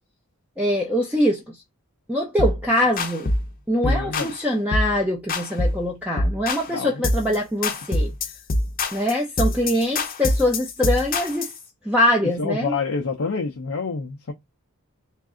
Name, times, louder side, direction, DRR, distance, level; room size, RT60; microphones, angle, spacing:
voice 1, 0.6-1.4 2.1-3.3 3.7-8.1 8.9-11.5 11.9-12.7, left 1 dB, 5° right, 0.7 m, -23 dB
sound 1, 2.4-2.6 3.0-3.5 3.8-4.4 4.7-5.0 5.3-5.8 6.2-6.7 7.0-7.4 7.6-11.6, left 2 dB, 40° left, 0.8 m, -24 dB
voice 2, 3.8-4.6 6.7-7.4 12.4-14.3, left 4 dB, 75° left, 0.7 m, -28 dB
3.5 x 2.6 x 3.7 m
head